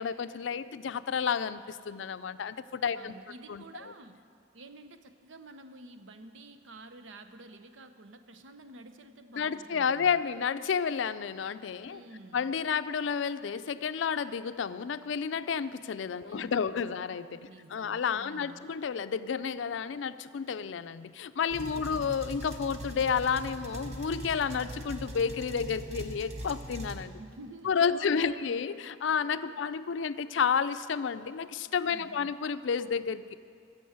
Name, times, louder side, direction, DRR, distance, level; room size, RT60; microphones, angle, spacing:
voice 1, 0.0-3.1 3.5-3.6 9.3-12.0 12.3-27.1 27.6-33.3, left 6 dB, 75° left, 13 dB, 0.4 m, -31 dB
voice 2, 2.9-4.2 4.5-10.2 11.9-12.5 16.2-17.0 17.5-18.7 21.6-22.1 27.1-28.6 29.4-29.6 31.9-32.3, right 2 dB, 85° right, 8 dB, 0.8 m, -50 dB
sound 1, 21.5-27.0, right 1 dB, 35° right, 1.0 m, -41 dB
15.0 x 7.0 x 7.9 m, 2.3 s
head